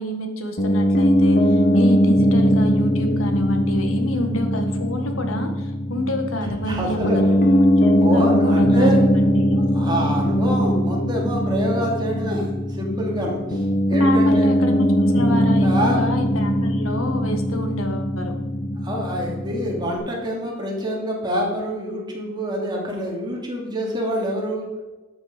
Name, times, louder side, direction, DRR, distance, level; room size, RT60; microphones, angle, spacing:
voice 1, 0.0-8.9 9.3-9.6 14.0-18.3, left 1 dB, 80° left, 5 dB, 1.6 m, -29 dB
Piano, 0.6-20.0, equal, 40° left, 1.3 m, -20 dB
voice 2, 6.4-7.2 8.0-9.0 9.5-13.6 13.9-14.5 15.6-16.0 18.8-24.7, equal, 20° right, -2 dB, 2.7 m, -26 dB
12.5 x 7.2 x 5.2 m, 1.2 s
head